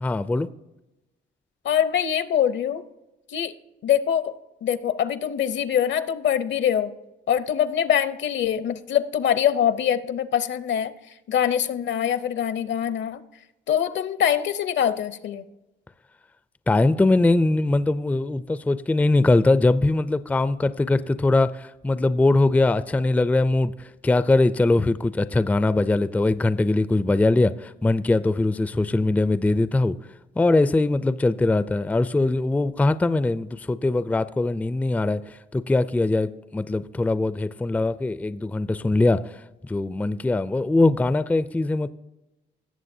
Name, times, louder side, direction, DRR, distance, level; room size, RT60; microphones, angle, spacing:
voice 1, 0.0-0.5 16.7-30.0 30.4-39.2 39.6-41.9, left 2 dB, 5° left, 0.3 m, -21 dB
voice 2, 1.6-2.8 3.3-3.5 3.8-4.3 4.6-6.9 7.3-10.9 11.3-13.2 13.7-15.5, left 9 dB, 65° left, 0.7 m, -23 dB
17.5 x 7.2 x 2.7 m
cardioid pair, 90°, 20 cm